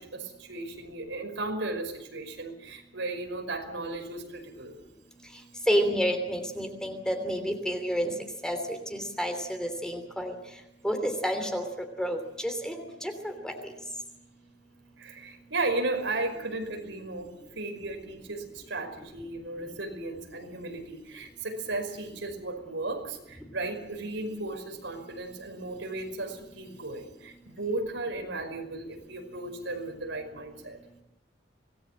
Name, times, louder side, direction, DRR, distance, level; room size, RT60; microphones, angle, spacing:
voice 1, 0.0-4.8 15.0-30.8, right 2 dB, 80° right, 4 dB, 5.4 m, -35 dB
voice 2, 5.7-8.1 8.4-10.4 10.8-11.6 12.0-13.7, equal, 5° left, 5 dB, 3.1 m, -30 dB
26.0 x 19.5 x 7.5 m, 0.85 s
head